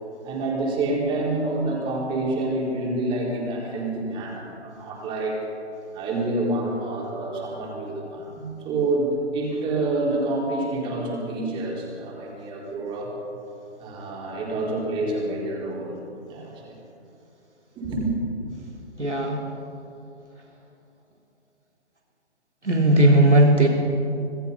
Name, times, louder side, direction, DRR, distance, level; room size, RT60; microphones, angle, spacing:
voice 1, 0.2-5.4 5.9-13.1 13.8-16.0 16.3-16.8 17.8-18.1, right 2 dB, 15° right, -2 dB, 4.3 m, -27 dB
voice 2, 19.0-19.4 22.6-23.7, right 1 dB, 85° right, 0 dB, 3.7 m, -17 dB
26.5 x 19.5 x 5.4 m, 2.6 s
figure-of-eight pair, 135°, 34 cm